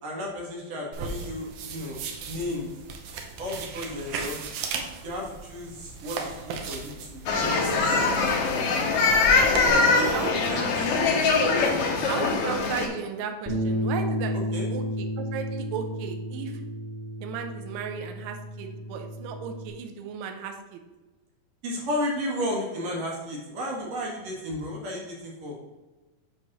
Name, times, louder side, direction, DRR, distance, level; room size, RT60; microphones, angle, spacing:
voice 1, 0.0-2.7 3.4-4.4 5.0-9.0 9.6-10.6 10.9-11.2 11.5-12.1 14.3-14.7 21.6-25.6, left 1 dB, 55° right, -2 dB, 2.1 m, -34 dB
sound 1, 0.9-9.7, right 4 dB, 75° right, 2.0 m, -37 dB
sound 2, 7.3-12.9, left 4 dB, 75° left, 1.4 m, -22 dB
voice 2, 9.9-10.3 12.1-14.4 14.7-16.6 17.2-20.8, right 7 dB, 90° right, 5 dB, 1.6 m, -35 dB
Bass guitar, 13.5-19.7, equal, 5° right, 1.4 m, -32 dB
8.0 x 3.2 x 6.0 m, 1.1 s
omnidirectional pair, 4.2 m